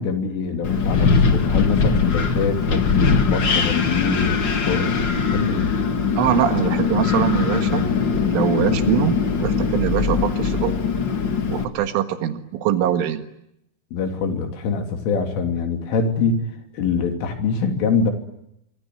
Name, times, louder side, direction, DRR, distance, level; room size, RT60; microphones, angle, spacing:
voice 1, 0.0-5.0 5.3-5.7 13.9-16.4 16.7-18.1, left 5 dB, 85° left, 5 dB, 5.6 m, -24 dB
Wind, 0.6-11.6, left 5 dB, 70° left, 1.1 m, -21 dB
voice 2, 6.2-7.8 8.3-10.7 11.5-13.3, right 11 dB, 90° right, 8 dB, 4.3 m, -23 dB
25.0 x 25.0 x 9.5 m, 0.80 s
omnidirectional pair, 5.5 m